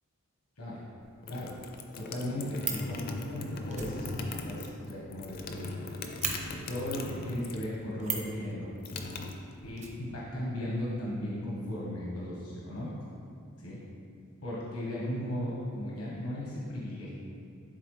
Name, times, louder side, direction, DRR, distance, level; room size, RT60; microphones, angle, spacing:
sound 1, 1.0-7.8 8.1-9.9, left 3 dB, 45° left, 0.4 m, -39 dB
voice 1, 2.0-5.7 6.7-8.7 9.6-12.9 13.6-13.8 14.4-17.1, left 1 dB, 90° left, -6 dB, 1.2 m, -36 dB
Fire, 2.2-2.9 3.7-5.5 5.7-5.8 6.2-6.4 8.0-8.4 9.8-10.7 10.9-11.0 11.2-11.3, right 7 dB, 30° right, 0.6 m, -36 dB
10.0 x 4.0 x 3.2 m, 2.5 s
head